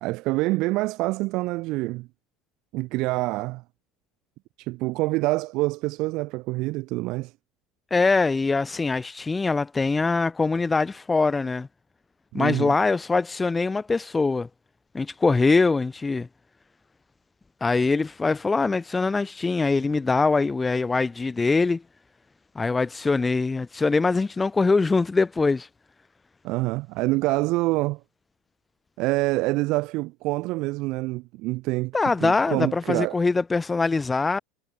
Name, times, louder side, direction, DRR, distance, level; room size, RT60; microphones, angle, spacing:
voice 1, 0.0-2.1 2.7-3.6 4.6-7.3 12.3-12.7 26.4-28.0 29.0-31.9 32.2-33.2, right 21 dB, 60° right, 0.8 m, -26 dB
voice 2, 7.9-11.7 12.3-14.5 14.9-16.3 17.6-21.8 22.6-25.7 31.9-34.4, left 3 dB, 15° left, 2.1 m, -23 dB
supercardioid pair, 130°, 0 cm